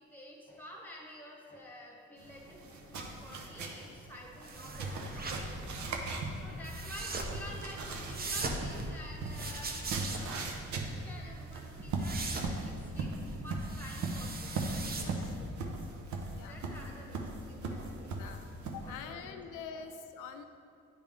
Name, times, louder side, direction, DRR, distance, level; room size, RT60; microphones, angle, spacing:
voice 1, 0.0-5.7 6.4-10.5 10.8-16.1 16.5-18.1 18.8-19.4 19.7-19.8, equal, 5° left, -1 dB, 1.3 m, -50 dB
sound 1, 2.2-19.1, right 3 dB, 70° right, 0.8 m, -40 dB
sound 2, 4.4-15.5, right 2 dB, 30° right, 0.7 m, -41 dB
voice 2, 14.9-15.3 16.3-16.6 18.2-18.4 18.7-20.4, left 6 dB, 85° left, 6 dB, 0.5 m, -45 dB
9.4 x 3.3 x 3.6 m, 2.5 s
cardioid pair, 90°, 30 cm